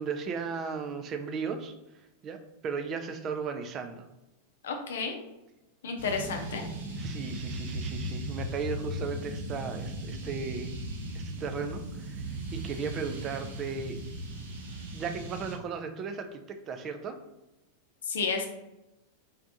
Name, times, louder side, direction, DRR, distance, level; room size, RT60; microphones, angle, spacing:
voice 1, 0.0-1.7 2.2-2.4 2.6-4.1 7.0-10.7 11.1-14.0 14.9-17.2, right 5 dB, 30° right, 7 dB, 0.4 m, -36 dB
voice 2, 4.6-5.2 5.8-6.6 18.1-18.5, left 4 dB, 60° left, 4 dB, 0.6 m, -31 dB
sound 1, 6.0-15.5, right 1 dB, 60° right, 0.8 m, -37 dB
3.9 x 3.3 x 2.6 m, 0.96 s
figure-of-eight pair, 90°, 0 cm